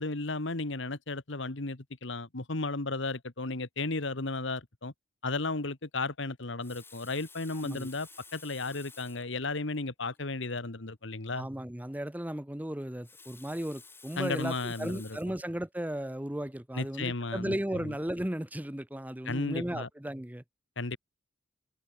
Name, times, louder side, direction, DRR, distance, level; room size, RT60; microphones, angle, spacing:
voice 1, 0.0-4.9 5.2-11.5 14.2-15.2 16.7-17.9 19.2-19.9 20.8-21.0, left 3 dB, 65° left, 1.7 m, -34 dB
Water tap faucet, 6.4-9.3 10.1-10.2 10.5-10.6 12.8-15.4 16.1-16.3, left 4 dB, 10° left, 3.6 m, -53 dB
voice 2, 11.3-20.4, right 1 dB, 10° right, 0.9 m, -35 dB
head